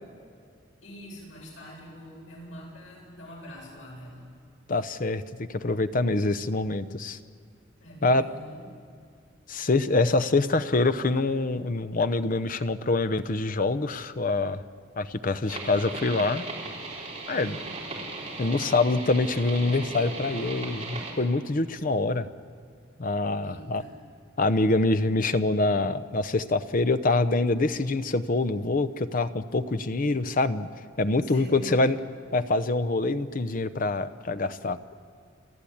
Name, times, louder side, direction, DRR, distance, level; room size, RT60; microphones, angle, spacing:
voice 1, 0.8-4.3 7.8-8.7 17.3-17.8 23.4-24.0 31.2-31.9, equal, 85° left, -3 dB, 7.8 m, -45 dB
voice 2, 4.7-7.2 8.0-8.2 9.5-14.6 15.0-16.4 17.3-17.6 18.4-22.3 23.0-23.8 24.4-30.7 31.0-32.0 32.3-34.8, left 2 dB, 45° left, 12 dB, 0.7 m, -25 dB
sound 1, 15.5-21.1, right 2 dB, 30° right, 4.1 m, -37 dB
29.5 x 13.5 x 8.6 m, 2.2 s
head